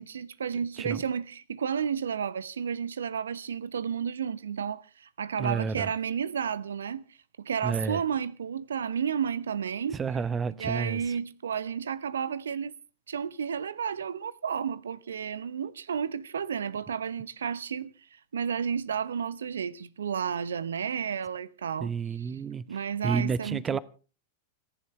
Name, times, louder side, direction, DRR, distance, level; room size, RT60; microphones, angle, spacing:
voice 1, 0.0-7.0 7.4-10.0 10.6-12.7 13.1-17.9 18.3-21.9 22.2-22.3 22.7-23.8, right 7 dB, 75° right, 0.9 m, -32 dB
voice 2, 5.4-5.9 7.6-8.0 9.9-11.2 21.8-22.6 23.0-23.8, right 5 dB, 20° right, 0.8 m, -30 dB
30.0 x 11.0 x 3.3 m
figure-of-eight pair, 95°, 0 cm